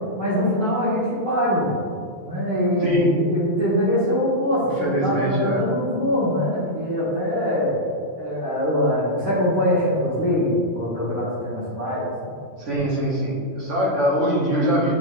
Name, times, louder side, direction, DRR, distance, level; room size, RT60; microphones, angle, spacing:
voice 1, 0.2-1.7 2.2-7.7 8.2-12.4, left 1 dB, 35° right, -11 dB, 1.7 m, -23 dB
voice 2, 2.7-3.1 4.8-5.6 12.6-15.0, right 1 dB, 60° right, -6 dB, 1.8 m, -23 dB
9.2 x 3.3 x 3.2 m, 2.2 s
omnidirectional pair, 1.4 m